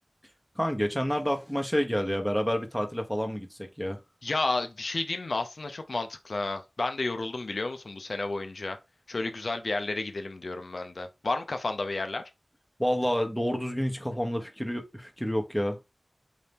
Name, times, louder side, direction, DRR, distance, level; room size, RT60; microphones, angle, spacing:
voice 1, 0.6-3.5 3.8-4.0 12.8-15.8, equal, ahead, 0.9 m, -28 dB
voice 2, 4.2-8.8 9.1-12.2, left 3 dB, 75° left, 0.5 m, -31 dB
3.9 x 2.8 x 3.5 m
wide cardioid pair, 50°, 0 cm